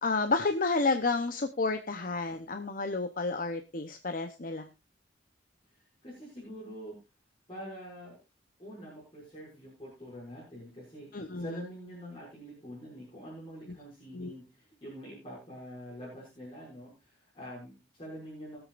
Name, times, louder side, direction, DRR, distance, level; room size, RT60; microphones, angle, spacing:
voice 1, 0.0-4.7 11.1-11.6 14.1-14.4, left 3 dB, 50° left, 7 dB, 0.8 m, -30 dB
voice 2, 5.7-6.9 7.5-8.2 8.6-18.6, equal, 30° left, -5 dB, 6.1 m, -46 dB
22.5 x 8.1 x 2.5 m, 0.26 s
head